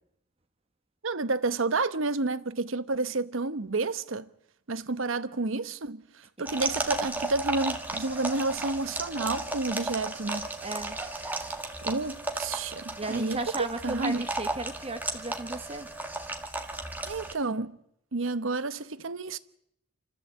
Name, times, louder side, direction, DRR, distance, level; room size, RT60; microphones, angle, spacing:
voice 1, 1.0-4.3 4.7-10.5 11.8-13.4 13.8-14.2 17.1-17.8 18.1-19.4, right 3 dB, 70° right, 1.0 m, -30 dB
sound 1, 6.5-17.3, right 2 dB, 10° right, 1.8 m, -34 dB
voice 2, 10.6-11.0 13.0-15.9, right 2 dB, 30° right, 1.2 m, -35 dB
28.0 x 14.0 x 8.0 m
head